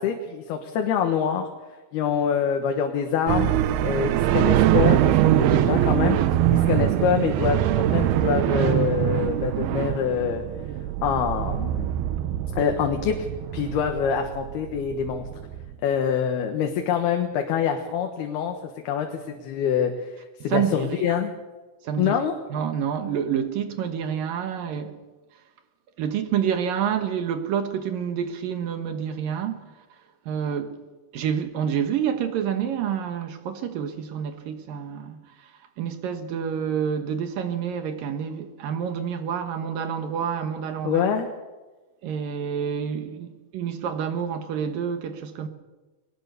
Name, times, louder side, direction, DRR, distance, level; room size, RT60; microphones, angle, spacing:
voice 1, 0.0-1.5 1.9-3.5 3.8-6.2 6.5-10.4 11.0-11.9 12.5-13.3 13.5-15.2 15.8-18.5 18.8-20.1 20.4-21.3 22.0-22.3 40.8-41.3, left 7 dB, 85° left, 3.4 m, -25 dB
sound 1, 3.3-15.7, right 12 dB, 85° right, 2.8 m, -23 dB
voice 2, 20.5-21.2 21.8-22.2 22.5-25.0 26.0-29.8 30.3-30.8 31.1-35.5 35.8-41.1 42.0-45.5, right 8 dB, 70° right, 2.9 m, -28 dB
23.0 x 19.0 x 6.8 m
omnidirectional pair, 4.4 m